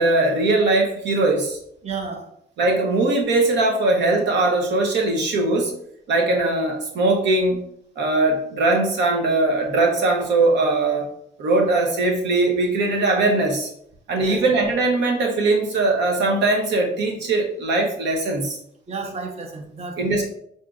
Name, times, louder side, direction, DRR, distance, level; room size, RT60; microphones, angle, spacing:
voice 1, 0.0-1.6 2.6-5.7 6.1-7.6 8.0-11.1 11.4-13.7 14.1-18.6 20.0-20.3, right 2 dB, 85° right, 2 dB, 0.8 m, -20 dB
voice 2, 1.8-2.3 14.2-14.4 18.9-20.3, right 4 dB, 35° right, 3 dB, 0.8 m, -32 dB
6.0 x 2.8 x 2.4 m, 0.69 s
cardioid pair, 95°, 18 cm